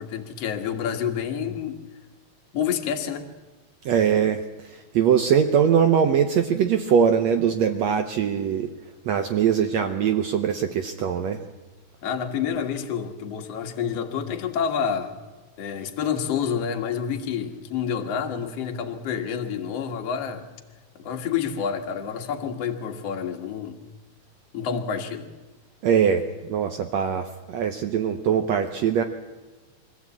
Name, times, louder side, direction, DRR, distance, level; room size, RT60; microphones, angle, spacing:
voice 1, 0.0-1.8 2.5-3.3 12.0-15.1 15.6-20.4 21.0-23.8 24.5-25.3, left 7 dB, 50° left, 4 dB, 2.3 m, -28 dB
voice 2, 3.8-4.4 4.9-8.7 9.1-11.4 25.8-29.0, right 8 dB, 75° right, 7 dB, 1.7 m, -22 dB
24.0 x 15.5 x 8.5 m, 1.3 s
omnidirectional pair, 4.1 m